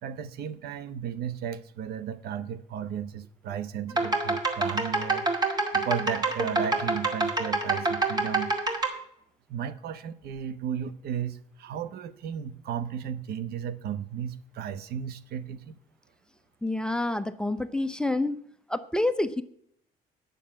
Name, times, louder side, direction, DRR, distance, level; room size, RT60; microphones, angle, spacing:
voice 1, 0.0-5.3 5.7-8.5 9.5-15.8, right 8 dB, 70° right, 14 dB, 0.9 m, -34 dB
sound 1, 3.9-8.9, right 3 dB, 25° right, 2.3 m, -26 dB
voice 2, 16.6-18.4 18.7-19.4, left 2 dB, 5° left, 10 dB, 0.6 m, -28 dB
9.2 x 7.0 x 7.4 m, 0.70 s
cardioid pair, 110°, 17 cm